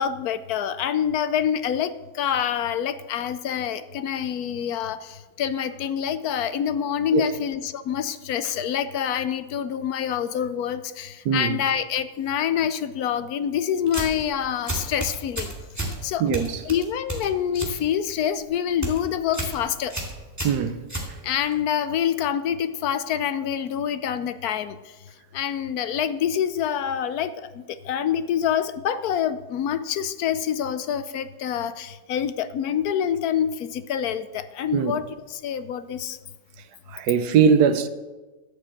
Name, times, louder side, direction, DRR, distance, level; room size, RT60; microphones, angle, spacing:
voice 1, 0.0-15.5 16.0-19.9 21.2-24.8 25.3-35.0 35.3-36.2, left 9 dB, 75° left, 1.1 m, -26 dB
voice 2, 11.2-11.6 16.2-16.5 20.4-20.8 34.7-34.9 36.9-37.9, right 7 dB, 85° right, 1.3 m, -20 dB
sound 1, 13.9-14.3 14.7-16.0 16.3-17.8 18.1-18.4 18.7-19.0 19.3-19.6 19.9-21.5, right 1 dB, 10° right, 2.3 m, -31 dB
11.5 x 6.4 x 7.7 m
omnidirectional pair, 1.7 m